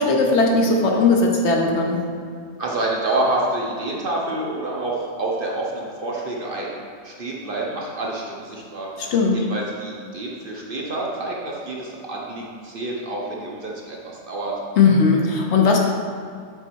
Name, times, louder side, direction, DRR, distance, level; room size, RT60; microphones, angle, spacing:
voice 1, 0.0-2.1 9.1-9.4 14.8-15.8, left 4 dB, 60° left, 0 dB, 0.9 m, -18 dB
voice 2, 2.6-6.7 7.0-14.6, right 2 dB, 45° right, -3 dB, 0.9 m, -28 dB
6.9 x 4.1 x 4.5 m, 2.2 s
omnidirectional pair, 1.4 m